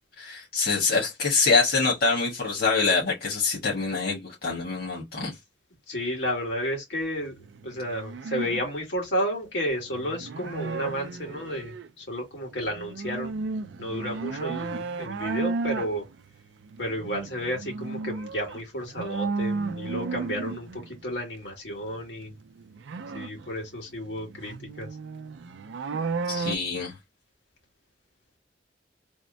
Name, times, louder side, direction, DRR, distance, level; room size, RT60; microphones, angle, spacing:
voice 1, 0.2-5.3 26.3-26.9, left 4 dB, 55° left, 1.4 m, -25 dB
voice 2, 5.9-7.3 7.6-13.3 13.8-16.1 16.8-22.3 23.1-24.9, equal, 80° left, 2.0 m, -32 dB
sound 1, 7.3-8.6 9.8-11.9 12.4-21.1 22.3-26.6, right 4 dB, 85° right, 0.4 m, -34 dB
3.5 x 2.1 x 4.0 m
head